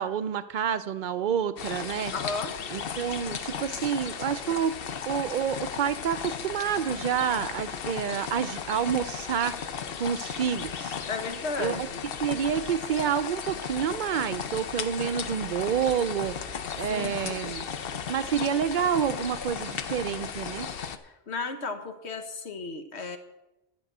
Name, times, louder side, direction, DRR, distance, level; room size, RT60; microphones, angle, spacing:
voice 1, 0.0-2.1 2.7-4.8 5.1-9.6 10.0-11.0 11.6-11.9 12.2-16.4 16.8-17.6 18.1-20.7, right 8 dB, 55° right, 13 dB, 0.6 m, -28 dB
sound 1, 1.6-21.0, left 7 dB, 65° left, 0.9 m, -35 dB
voice 2, 2.1-2.5 11.1-12.0 16.8-17.6 21.0-23.2, left 4 dB, 80° left, 7 dB, 1.5 m, -34 dB
12.5 x 5.4 x 8.0 m, 0.97 s
omnidirectional pair, 1.1 m